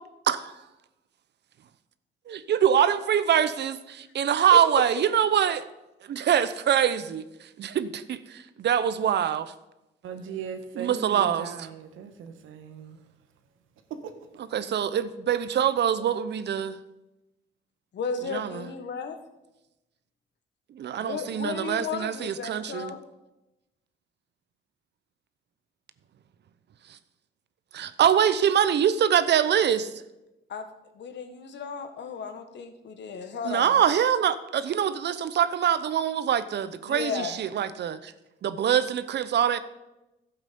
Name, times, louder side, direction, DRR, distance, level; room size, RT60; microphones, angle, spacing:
voice 1, 2.3-5.6 6.1-7.2 7.6-9.5 10.8-11.5 14.5-16.8 18.3-18.6 20.8-22.9 27.7-29.9 33.4-38.1 38.4-39.6, right 9 dB, 60° right, 0.8 m, -24 dB
voice 2, 10.0-13.0 13.9-14.2, right 7 dB, 85° right, 1.2 m, -38 dB
voice 3, 17.9-19.2 21.0-23.0 30.5-30.7 30.9-33.7 36.8-37.4, left 6 dB, 65° left, 1.5 m, -34 dB
12.0 x 8.2 x 5.3 m
cardioid pair, 90°, 20 cm